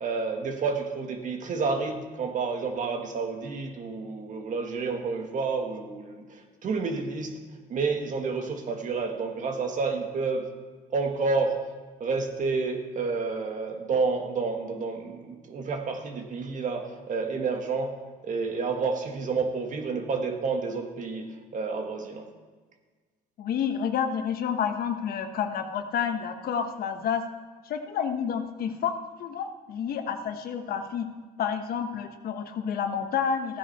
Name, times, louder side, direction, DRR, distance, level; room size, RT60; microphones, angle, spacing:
voice 1, 0.0-7.3 7.7-10.5 10.9-11.6 12.0-18.0 18.2-22.3, right 4 dB, 50° right, 4 dB, 1.9 m, -30 dB
voice 2, 23.4-27.2 27.6-31.1 31.4-33.6, left 7 dB, 65° left, 7 dB, 1.3 m, -29 dB
15.0 x 9.6 x 4.3 m, 1.5 s
cardioid pair, 110°, 17 cm